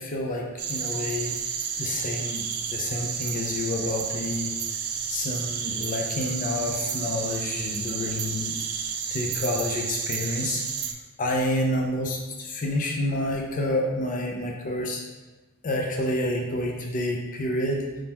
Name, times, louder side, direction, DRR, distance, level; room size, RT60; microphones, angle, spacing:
voice 1, 0.0-1.4 1.8-4.6 5.1-8.5 9.1-10.6 11.2-15.0 15.6-17.9, left 1 dB, 35° left, 0 dB, 0.5 m, -28 dB
sound 1, 0.6-10.9, right 7 dB, 65° right, 0.4 m, -31 dB
4.9 x 3.7 x 2.9 m, 1.2 s
head